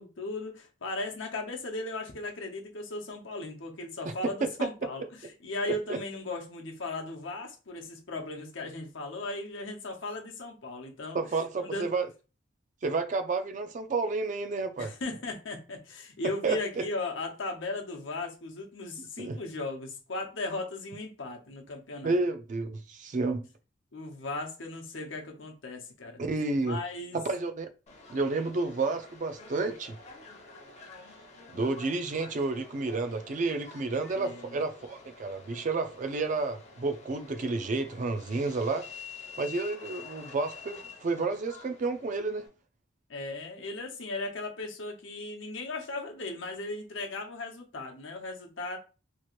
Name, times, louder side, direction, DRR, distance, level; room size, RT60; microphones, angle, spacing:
voice 1, 0.0-11.2 11.5-11.9 14.8-22.2 23.9-26.2 26.6-27.2 34.1-34.6 43.1-48.8, left 2 dB, 85° left, 0.8 m, -37 dB
voice 2, 11.1-12.1 12.8-14.9 16.4-16.8 19.0-19.4 22.0-23.4 26.2-26.8 27.1-27.7 28.1-30.0 31.5-38.9 39.4-42.4, right 3 dB, 40° right, 0.4 m, -30 dB
Subway metro underground, 27.9-42.5, left 4 dB, 35° left, 0.6 m, -49 dB
2.9 x 2.5 x 3.0 m
head